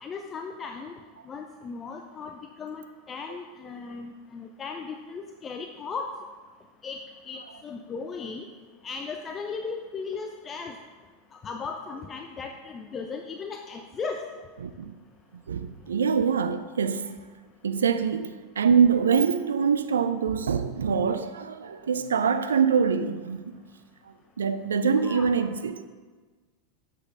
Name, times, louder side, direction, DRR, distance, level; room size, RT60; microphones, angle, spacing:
voice 1, 0.0-0.9 1.3-6.1 6.8-7.0 7.3-8.5 8.8-10.7 11.4-14.2 24.9-25.3, left 5 dB, 30° left, 0.7 m, -37 dB
voice 2, 14.6-15.0 15.5-17.2 17.6-23.6 24.4-25.9, right 6 dB, 80° right, 0.4 m, -24 dB
8.1 x 6.5 x 5.4 m
hypercardioid pair, 90°, 0 cm